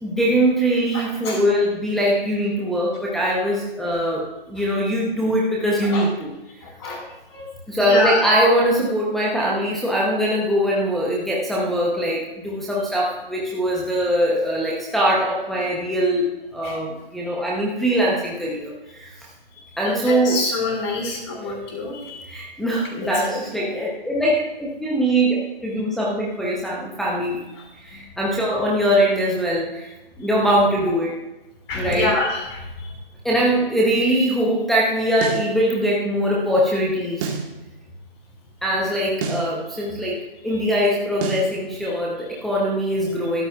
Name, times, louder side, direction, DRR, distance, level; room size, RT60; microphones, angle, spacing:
voice 1, 0.0-6.3 7.7-19.1 19.8-20.4 21.4-21.5 22.3-27.4 27.8-29.9 30.2-31.1 31.7-32.2 33.2-37.3 38.6-43.5, equal, ahead, -5 dB, 0.7 m, -22 dB
voice 2, 0.9-1.4 5.9-6.1 6.6-8.2 16.6-16.8 19.8-22.2 23.2-23.4 31.7-32.9, left 3 dB, 30° left, 0 dB, 5.1 m, -27 dB
sound 1, 35.2-35.5 37.2-37.5 39.2-39.5 41.2-41.5, right 5 dB, 20° right, 1.7 m, -27 dB
21.0 x 13.5 x 2.4 m, 1.0 s
figure-of-eight pair, 145°, 30 cm